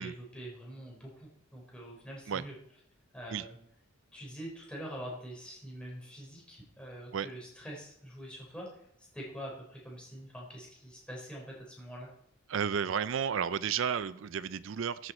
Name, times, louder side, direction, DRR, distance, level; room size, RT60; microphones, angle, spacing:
voice 1, 0.0-2.5 3.1-3.6 4.1-8.7 9.1-12.1, equal, 5° left, -3 dB, 4.2 m, -45 dB
voice 2, 12.5-15.1, right 7 dB, 60° right, 15 dB, 0.4 m, -32 dB
14.0 x 7.8 x 4.3 m, 0.71 s
head